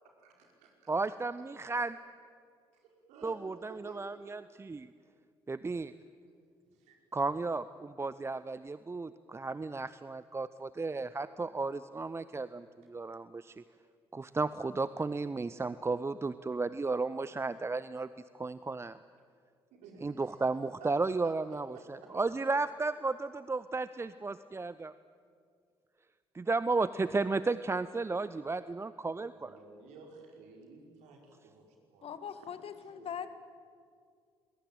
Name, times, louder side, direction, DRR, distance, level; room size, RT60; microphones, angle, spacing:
voice 1, 0.2-0.9 2.7-3.4 3.7-4.1 6.9-7.0 17.2-17.3 19.7-20.5 20.8-21.3 21.7-22.1 29.3-33.2, right 4 dB, 60° right, 1 dB, 5.4 m, -54 dB
voice 2, 0.9-1.9 3.2-4.9 5.5-5.9 7.1-13.5 14.1-18.1 18.3-19.0 20.0-24.9 26.3-29.6, right 3 dB, 20° right, 15 dB, 0.7 m, -34 dB
voice 3, 32.0-33.3, left 8 dB, 45° left, 12 dB, 1.7 m, -41 dB
27.0 x 21.5 x 9.0 m, 2.2 s
figure-of-eight pair, 50°, 13 cm